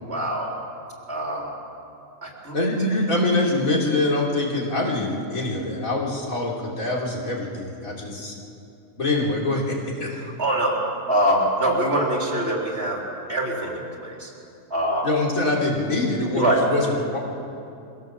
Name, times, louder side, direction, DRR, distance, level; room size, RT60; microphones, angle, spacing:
voice 1, 0.1-0.5 1.1-1.5 2.2-2.6 10.1-13.0 13.3-14.3 14.7-15.1 16.4-16.7, right 1 dB, 50° right, -1 dB, 3.6 m, -24 dB
voice 2, 2.5-8.4 9.0-10.1 15.0-17.2, left 2 dB, 85° left, -3 dB, 3.7 m, -24 dB
23.5 x 16.5 x 7.5 m, 2.7 s
omnidirectional pair, 1.4 m